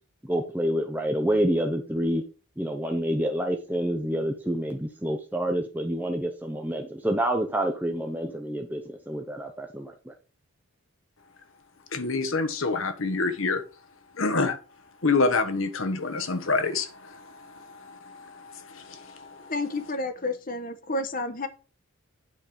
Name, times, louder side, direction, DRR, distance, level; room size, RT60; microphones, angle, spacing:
voice 1, 0.2-2.2 2.6-10.1, right 1 dB, 10° right, 0.7 m, -28 dB
voice 2, 11.9-13.6 14.2-14.6 15.0-16.9, left 3 dB, 65° left, 1.2 m, -25 dB
voice 3, 19.5-21.5, left 2 dB, 40° left, 1.0 m, -30 dB
8.6 x 4.3 x 5.1 m
head